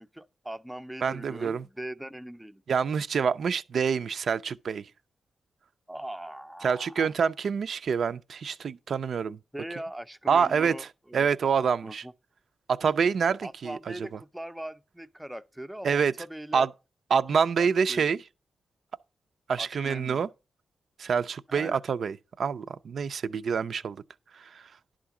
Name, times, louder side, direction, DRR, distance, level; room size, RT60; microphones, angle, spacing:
voice 1, 0.0-2.6 5.9-7.1 9.5-11.3 11.8-12.1 13.3-16.7 17.6-18.2 19.6-20.3 21.5-21.8, right 1 dB, 5° right, 0.4 m, -41 dB
voice 2, 1.0-1.6 2.7-4.9 6.6-9.4 10.3-12.0 12.7-14.1 15.8-16.1 16.5-16.7 17.1-18.2 19.5-20.3 21.0-24.0 24.3-24.6, right 6 dB, 70° right, 0.4 m, -27 dB
11.0 x 3.7 x 6.9 m
wide cardioid pair, 100°, 0 cm